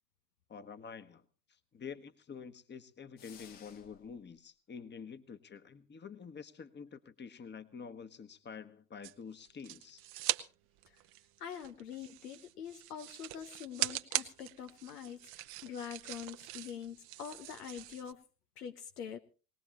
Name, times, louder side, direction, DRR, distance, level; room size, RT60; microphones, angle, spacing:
voice 1, 0.5-1.2 1.7-10.0, left 6 dB, 25° left, 11 dB, 1.2 m, -48 dB
sound 1, 3.2-4.2, left 8 dB, 65° left, 1.9 m, -56 dB
sound 2, 9.0-10.4 10.8-18.1, right 16 dB, 65° right, 1.0 m, -41 dB
voice 2, 11.4-18.2 18.6-19.2, left 8 dB, 90° left, 8 dB, 0.9 m, -45 dB
21.0 x 18.5 x 3.0 m, 0.33 s
hypercardioid pair, 70°, 45 cm